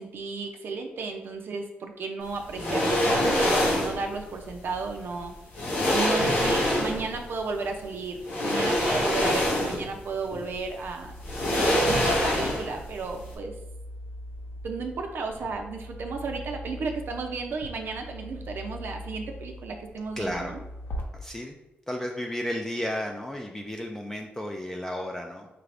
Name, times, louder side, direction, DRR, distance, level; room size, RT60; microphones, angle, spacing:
voice 1, 0.0-5.3 5.9-11.1 11.5-13.5 14.6-20.6, right 4 dB, 65° right, 3 dB, 0.4 m, -34 dB
sound 1, 2.5-4.0 5.1-5.2 5.5-7.1 8.2-10.0 10.3-10.4 11.2-12.8 13.1-13.3, left 1 dB, 80° left, 1.2 m, -25 dB
sound 2, 10.4-21.0, equal, 60° left, 0.7 m, -41 dB
voice 2, 20.2-20.6 21.1-21.6 21.9-25.5, left 1 dB, 10° left, 1 dB, 0.4 m, -33 dB
4.7 x 2.5 x 3.3 m, 0.96 s
cardioid pair, 100°, 4 cm